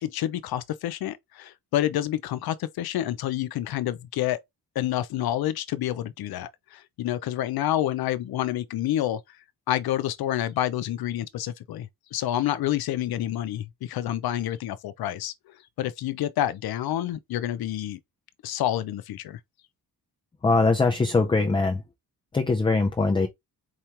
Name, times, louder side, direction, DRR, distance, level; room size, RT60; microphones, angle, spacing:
voice 1, 0.0-4.4 4.7-9.2 9.7-18.0 18.4-19.4, left 12 dB, 85° left, 0.6 m, -28 dB
voice 2, 20.4-21.8 22.3-23.3, left 3 dB, 15° left, 0.4 m, -22 dB
4.7 x 2.9 x 3.2 m
wide cardioid pair, 165°, 36 cm